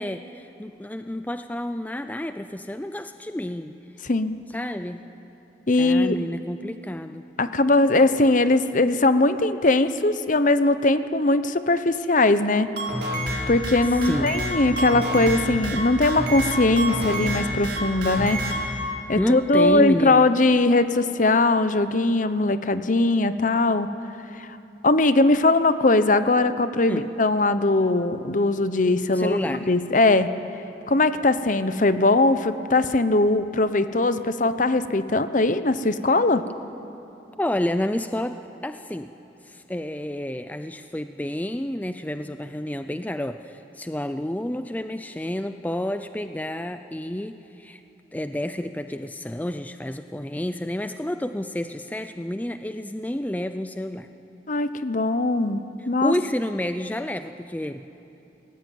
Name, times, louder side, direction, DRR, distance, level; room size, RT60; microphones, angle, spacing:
voice 1, 0.0-3.8 4.5-5.0 5.8-7.3 13.8-14.4 19.2-20.3 26.9-27.1 29.1-29.7 37.4-38.4 38.6-39.1 39.4-47.8 48.1-54.1 56.0-57.8, left 1 dB, 10° left, 9 dB, 0.5 m, -29 dB
voice 2, 4.0-4.4 5.7-6.2 7.4-12.7 13.5-18.4 19.1-23.9 24.8-30.3 30.9-36.4 54.5-56.1, left 2 dB, 45° left, 11 dB, 0.9 m, -20 dB
sound 1, 12.6-18.7, equal, 70° right, 4.6 m, -28 dB
24.0 x 19.5 x 9.3 m, 2.9 s
head